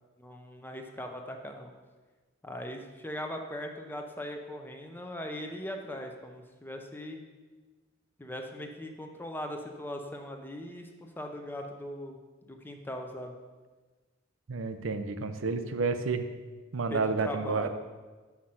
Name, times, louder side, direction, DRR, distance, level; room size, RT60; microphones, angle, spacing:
voice 1, 0.2-1.7 2.4-7.2 8.2-12.2 12.5-13.3 16.9-17.7, left 1 dB, 10° left, 3 dB, 0.7 m, -40 dB
voice 2, 14.5-16.3 16.7-17.7, right 4 dB, 85° right, 9 dB, 0.6 m, -30 dB
6.4 x 5.9 x 5.8 m, 1.3 s
head